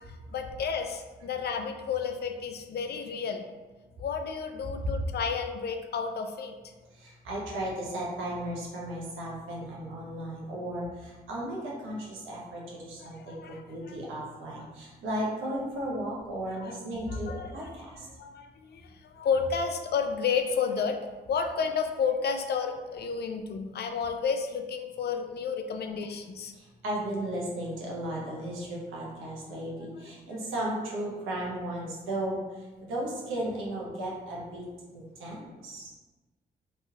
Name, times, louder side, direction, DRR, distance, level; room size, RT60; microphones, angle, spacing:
voice 1, 0.0-3.4 4.0-6.5 13.0-14.0 14.6-14.7 16.5-16.8 17.1-17.7 18.1-21.0 21.3-26.5 30.3-30.4, left 6 dB, 55° left, 5 dB, 0.4 m, -31 dB
voice 2, 7.0-18.1 26.5-32.6 32.9-34.7 34.9-35.9, right 1 dB, 80° right, -3 dB, 0.8 m, -35 dB
3.0 x 2.9 x 2.3 m, 1.2 s
hypercardioid pair, 40°, 20 cm